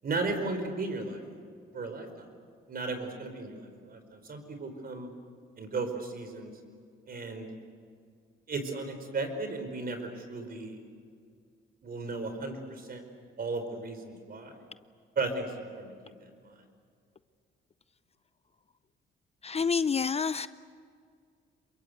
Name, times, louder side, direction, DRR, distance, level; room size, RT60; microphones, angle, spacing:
voice 1, 0.0-1.2 1.7-2.3 2.7-5.1 5.6-6.5 7.1-7.5 8.5-10.8 11.8-13.0 13.4-14.6 15.1-16.6, right 3 dB, 50° right, 7 dB, 5.0 m, -35 dB
voice 2, 19.4-20.5, left 5 dB, 30° left, 14 dB, 0.6 m, -28 dB
28.0 x 22.5 x 8.1 m, 2.2 s
cardioid pair, 90°, 20 cm